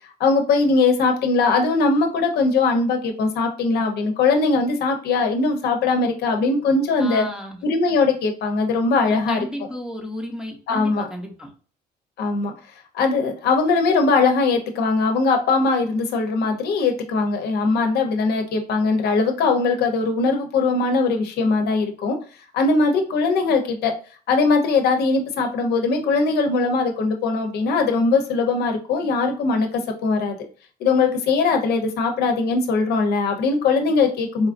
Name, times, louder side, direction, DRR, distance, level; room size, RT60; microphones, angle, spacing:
voice 1, 0.2-7.3 7.6-9.4 10.7-11.1 12.2-12.5 12.9-22.2 22.5-23.9 24.3-30.4 30.8-34.5, left 4 dB, 70° left, 4 dB, 0.7 m, -20 dB
voice 2, 7.0-7.6 9.0-11.5, left 1 dB, 5° right, 2 dB, 0.7 m, -33 dB
4.0 x 2.4 x 2.5 m, 0.38 s
cardioid pair, 110°, 17 cm